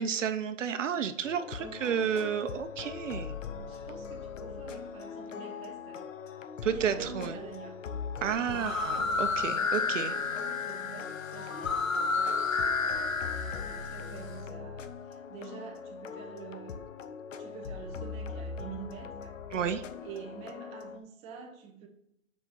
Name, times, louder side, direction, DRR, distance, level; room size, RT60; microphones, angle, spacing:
voice 1, 0.0-3.4 6.6-7.3 8.2-10.1 19.5-19.8, right 7 dB, 65° right, 10 dB, 0.9 m, -31 dB
sound 1, 1.2-21.0, left 6 dB, 70° left, 0.8 m, -41 dB
voice 2, 1.4-2.1 3.0-3.1 3.7-6.1 6.7-7.8 8.4-8.8 10.0-16.9 17.4-19.4 20.0-21.9, right 6 dB, 15° right, 2 dB, 0.8 m, -47 dB
sound 2, 8.5-14.3, left 4 dB, 85° left, 1.4 m, -31 dB
5.9 x 5.2 x 5.9 m, 0.78 s
hypercardioid pair, 150°, 39 cm